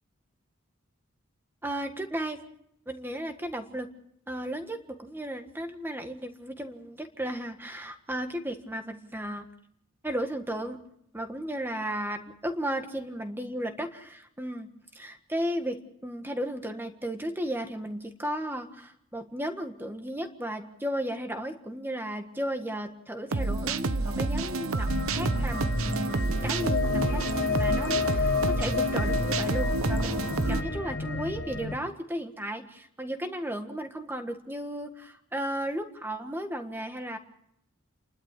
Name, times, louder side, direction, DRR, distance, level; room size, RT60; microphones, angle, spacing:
voice 1, 1.6-2.4 2.9-3.9 4.3-9.5 10.0-10.8 11.1-37.2, right 1 dB, 10° right, 6 dB, 1.5 m, -35 dB
sound 1, 23.3-30.6, right 2 dB, 80° right, 1.0 m, -29 dB
sound 2, 24.9-31.7, left 4 dB, 50° left, 2.0 m, -30 dB
29.0 x 12.0 x 8.3 m, 0.76 s
head